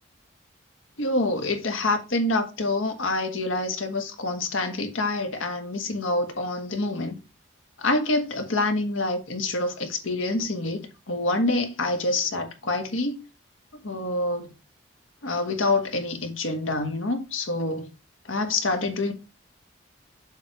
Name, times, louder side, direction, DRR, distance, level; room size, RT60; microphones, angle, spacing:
voice 1, 1.0-7.1 7.8-13.2 13.8-14.5 15.2-17.9 18.3-19.1, left 2 dB, 85° left, 1.4 m, -26 dB
7.3 x 3.3 x 6.2 m
head